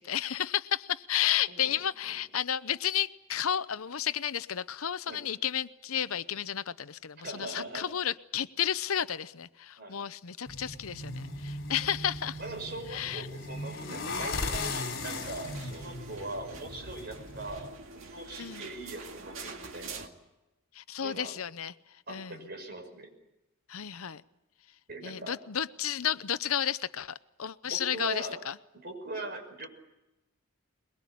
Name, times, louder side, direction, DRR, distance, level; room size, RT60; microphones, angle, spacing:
voice 1, 0.0-12.4 12.9-13.3 18.4-18.7 20.7-21.7 22.1-22.4 23.7-24.2 25.0-28.5, left 10 dB, 85° left, 15 dB, 0.8 m, -32 dB
voice 2, 1.5-2.2 5.1-5.2 7.2-7.9 9.8-10.0 12.4-20.1 21.0-21.3 22.1-23.1 24.9-25.4 27.7-28.4 28.8-29.7, right 2 dB, 50° right, 5 dB, 5.9 m, -41 dB
sound 1, 10.5-17.7, left 2 dB, 60° left, 3.7 m, -38 dB
sound 2, 14.4-20.1, right 3 dB, 65° right, 2.2 m, -45 dB
22.5 x 22.0 x 8.6 m, 0.95 s
head